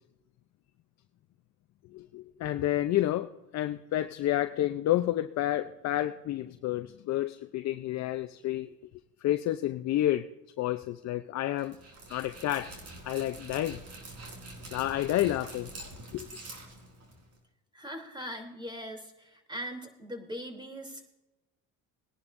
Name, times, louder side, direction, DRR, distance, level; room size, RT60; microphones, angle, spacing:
voice 1, 1.9-8.7 9.2-10.3 10.6-11.8 12.1-12.8 13.0-13.8 14.7-15.7 16.1-16.3, left 13 dB, 50° left, 0.7 m, -30 dB
Dog, 11.6-17.4, right 2 dB, 45° right, 4.3 m, -46 dB
voice 2, 17.7-21.0, equal, 15° right, 3.2 m, -40 dB
21.0 x 10.5 x 2.6 m
supercardioid pair, 90°, 35 cm